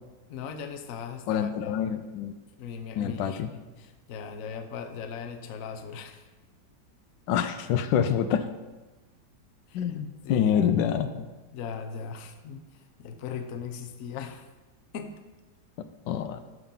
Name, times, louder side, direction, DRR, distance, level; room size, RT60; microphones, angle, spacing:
voice 1, 0.3-1.9 2.6-6.2 9.7-9.9 10.2-10.8 11.5-14.5 14.9-15.2, left 6 dB, 60° left, 7 dB, 1.0 m, -39 dB
voice 2, 1.3-2.4 3.0-3.5 7.3-8.5 9.7-11.3 16.1-16.4, left 8 dB, 85° left, 9 dB, 1.3 m, -26 dB
12.5 x 5.7 x 3.8 m, 1.2 s
omnidirectional pair, 1.9 m